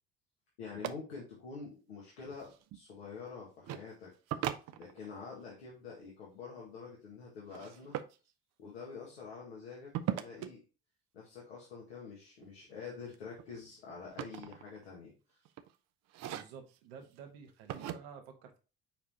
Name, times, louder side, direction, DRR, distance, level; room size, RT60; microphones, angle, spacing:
voice 1, 0.6-4.1 4.8-8.0 8.6-10.6 11.1-15.4, left 5 dB, 85° left, -4 dB, 1.8 m, -47 dB
sound 1, 0.8-0.9 2.2-2.8 3.6-3.8 4.3-5.3 7.5-8.2 9.9-10.5 12.4-12.7 13.1-15.0 15.4-15.7 16.1-16.8 17.7-18.0, right 11 dB, 55° right, 0.8 m, -39 dB
voice 2, 16.3-18.6, right 7 dB, 75° right, 4 dB, 1.5 m, -51 dB
7.1 x 4.8 x 2.8 m, 0.34 s
hypercardioid pair, 60°, 31 cm